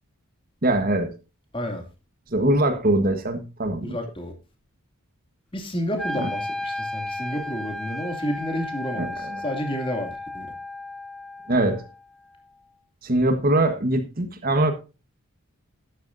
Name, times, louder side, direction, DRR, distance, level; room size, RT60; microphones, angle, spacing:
voice 1, 0.6-1.1 2.3-4.0 8.9-9.4 11.5-11.8 13.0-14.7, right 1 dB, 40° right, 1.3 m, -22 dB
voice 2, 1.5-1.9 3.8-4.3 5.5-10.5, equal, 25° left, 2.5 m, -30 dB
Wind instrument woodwind instrument, 6.0-12.1, left 2 dB, ahead, 0.7 m, -34 dB
12.5 x 11.5 x 2.6 m
head